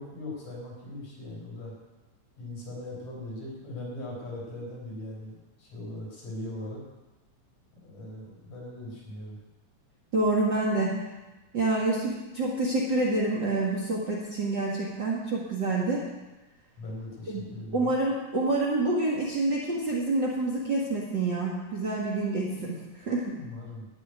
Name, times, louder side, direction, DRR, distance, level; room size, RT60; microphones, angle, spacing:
voice 1, 0.0-1.7 2.4-6.8 7.8-9.4 16.8-18.0 23.2-23.9, left 1 dB, 65° left, -4 dB, 5.5 m, -40 dB
voice 2, 10.1-11.0 11.5-16.1 17.3-17.4 17.7-23.3, right 2 dB, 40° right, -5 dB, 2.1 m, -27 dB
13.5 x 5.8 x 9.5 m, 1.1 s
omnidirectional pair, 3.4 m